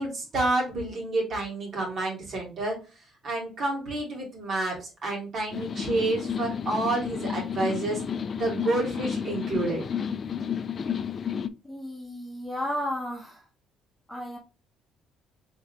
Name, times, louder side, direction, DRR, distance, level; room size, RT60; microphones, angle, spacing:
voice 1, 0.0-8.0 8.4-9.8, right 2 dB, 50° right, -2 dB, 2.6 m, -29 dB
sound 1, 5.5-11.5, left 7 dB, 45° left, 0.4 m, -31 dB
voice 2, 11.6-13.4 14.1-14.4, left 1 dB, ahead, -2 dB, 1.4 m, -33 dB
3.8 x 3.6 x 3.3 m, 0.31 s
cardioid pair, 85°, 0 cm